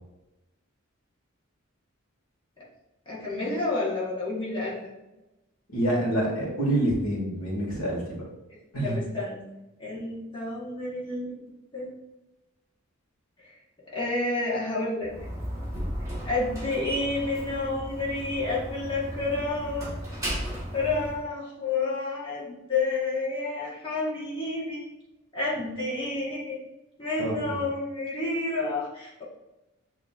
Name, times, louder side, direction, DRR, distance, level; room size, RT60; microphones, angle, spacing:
voice 1, 3.1-4.9 8.8-9.5 9.8-11.3 11.7-11.9 13.9-15.1 16.2-19.9 20.4-24.8 25.3-26.6 27.0-29.2, left 3 dB, 25° left, -7 dB, 1.3 m, -30 dB
voice 2, 5.7-8.2 8.7-9.1 27.2-27.3, right 1 dB, 80° left, -3 dB, 1.7 m, -27 dB
Slam, 15.0-21.2, right 1 dB, 15° right, 1.1 m, -35 dB
7.5 x 2.9 x 2.4 m, 0.98 s
head